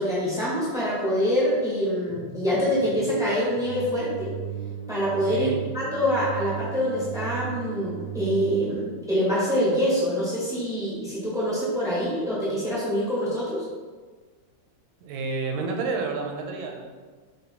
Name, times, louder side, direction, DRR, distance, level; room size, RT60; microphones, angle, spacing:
voice 1, 0.0-4.4 4.9-13.7, equal, ahead, -9 dB, 0.9 m, -25 dB
sound 1, 2.1-8.8, right 8 dB, 65° left, 0.5 m, -36 dB
voice 2, 15.0-17.0, right 4 dB, 85° right, 3 dB, 1.4 m, -30 dB
3.2 x 2.8 x 4.1 m, 1.4 s
omnidirectional pair, 2.1 m